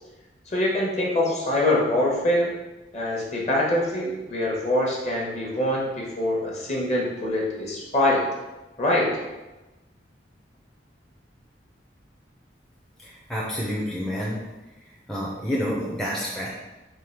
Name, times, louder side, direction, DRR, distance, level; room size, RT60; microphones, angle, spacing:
voice 1, 0.5-2.5 2.9-8.3 8.8-9.2, left 1 dB, 40° left, -3 dB, 1.0 m, -24 dB
voice 2, 13.0-14.4 15.1-16.5, equal, 5° left, -5 dB, 0.5 m, -29 dB
3.7 x 2.8 x 4.5 m, 1.1 s
head